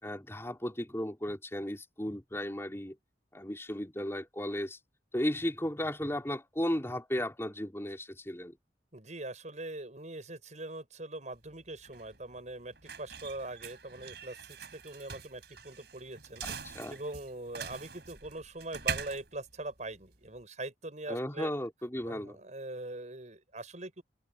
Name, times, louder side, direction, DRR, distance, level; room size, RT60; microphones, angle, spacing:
voice 1, 0.0-3.0 3.3-4.8 5.1-8.6 16.4-17.0 21.1-22.4, left 1 dB, 15° left, 4.0 m, -35 dB
voice 2, 8.9-16.4 16.9-21.5 22.1-24.0, right 2 dB, 45° right, 7.3 m, -42 dB
sound 1, 11.3-20.4, right 6 dB, 65° right, 6.0 m, -43 dB
open air
head